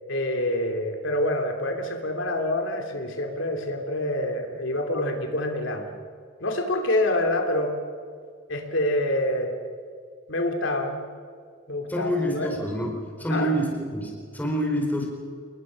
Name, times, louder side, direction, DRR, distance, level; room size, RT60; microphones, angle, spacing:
voice 1, 0.1-5.8 6.4-7.7 8.5-9.5 10.3-11.0 11.7-12.5 13.3-13.5, left 1 dB, 80° left, 4 dB, 2.9 m, -26 dB
voice 2, 11.9-15.1, equal, 10° left, 0 dB, 4.4 m, -27 dB
29.0 x 21.0 x 6.4 m, 2.1 s
head